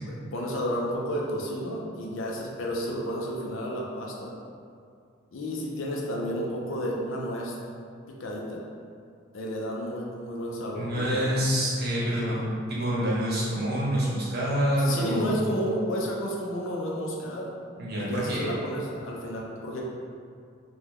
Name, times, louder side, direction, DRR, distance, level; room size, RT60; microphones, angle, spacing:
voice 1, 0.1-4.3 5.3-7.5 8.2-8.6 9.3-11.3 12.2-12.5 14.8-17.5 17.9-19.8, equal, 65° left, -2 dB, 0.5 m, -31 dB
voice 2, 10.7-15.4 17.8-18.5, equal, 50° right, -6 dB, 0.9 m, -27 dB
3.7 x 2.3 x 2.9 m, 2.3 s
head